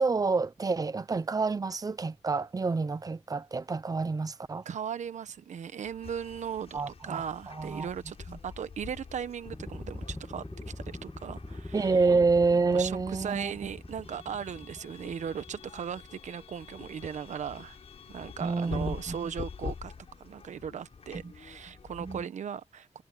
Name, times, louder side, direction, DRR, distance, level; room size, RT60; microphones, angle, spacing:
voice 1, 0.0-4.6 6.7-7.9 8.3-8.4 11.7-13.5 18.4-19.3 21.2-21.3 22.0-22.2, right 4 dB, 30° right, 0.9 m, -28 dB
voice 2, 4.6-10.4 10.8-12.0 12.7-17.8 18.1-19.9 20.2-23.0, right 8 dB, 90° right, 1.0 m, -38 dB
sound 1, 5.8-22.3, left 5 dB, 55° left, 6.5 m, -46 dB
sound 2, 9.5-16.2, left 1 dB, 10° left, 2.1 m, -43 dB
wide cardioid pair, 115°, 12 cm